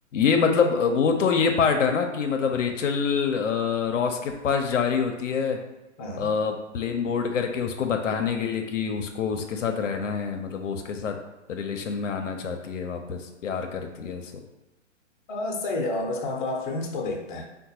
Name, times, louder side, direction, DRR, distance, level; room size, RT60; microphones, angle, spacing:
voice 1, 0.1-5.6 6.2-11.2 11.5-14.2, left 6 dB, 85° left, 4 dB, 0.5 m, -25 dB
voice 2, 6.0-6.3 15.3-17.5, left 2 dB, 40° left, 2 dB, 0.6 m, -30 dB
3.7 x 2.1 x 2.8 m, 1.0 s
hypercardioid pair, 130°, 37 cm